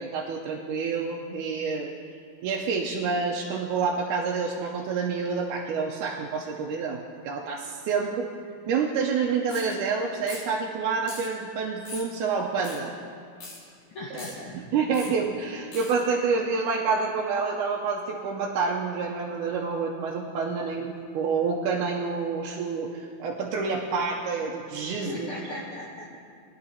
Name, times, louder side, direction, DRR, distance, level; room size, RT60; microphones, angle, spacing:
voice 1, 0.0-1.9 2.4-8.3 8.7-12.9 14.1-14.2 14.7-25.3, right 5 dB, 80° right, -1 dB, 2.1 m, -28 dB
sound 1, 9.5-9.7 10.3-10.5 11.0-11.3 11.9-12.1 12.6-12.8 13.4-13.6 14.1-14.3 14.9-15.1 15.7-15.9, left 2 dB, 90° left, 5.2 m, -40 dB
voice 2, 13.9-15.1 20.3-20.4 24.9-26.2, left 2 dB, 70° left, -3 dB, 1.2 m, -38 dB
20.0 x 10.5 x 2.8 m, 2.3 s
omnidirectional pair, 3.8 m